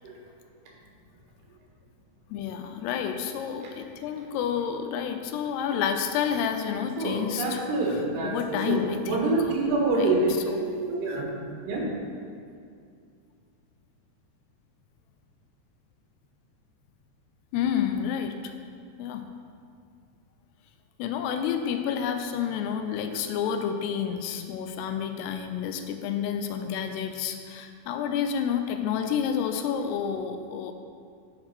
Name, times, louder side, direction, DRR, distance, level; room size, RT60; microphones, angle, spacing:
voice 1, 2.3-7.6 8.2-9.6 9.9-10.1 10.5-10.6 11.1-11.2 17.5-18.5 19.0-19.2 21.0-30.7, left 8 dB, 90° left, 6 dB, 2.6 m, -29 dB
voice 2, 7.0-11.3 11.7-11.9, right 2 dB, 80° right, -2 dB, 3.6 m, -26 dB
9.6 x 6.7 x 4.4 m, 2.3 s
omnidirectional pair, 4.7 m